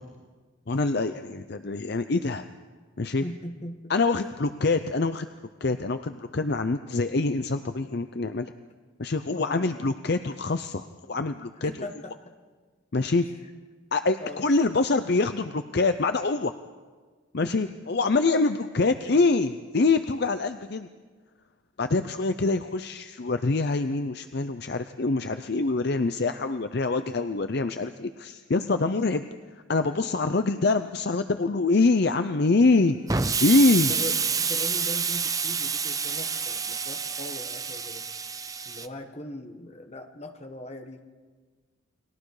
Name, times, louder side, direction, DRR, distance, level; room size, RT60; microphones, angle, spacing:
voice 1, 0.7-2.5 3.0-3.2 3.9-5.3 5.6-8.5 9.0-11.7 12.9-13.3 13.9-16.5 17.3-20.9 21.8-29.2 29.7-33.0 33.4-33.9, left 3 dB, 55° left, 9 dB, 0.6 m, -25 dB
voice 2, 3.2-3.9 9.3-9.7 11.6-12.3 14.2-14.5 17.4-17.7 33.9-38.0 38.6-41.0, left 1 dB, 30° left, 5 dB, 1.6 m, -40 dB
Explosion, 33.1-38.9, right 5 dB, 15° right, 0.5 m, -28 dB
30.0 x 21.5 x 4.9 m, 1.4 s
head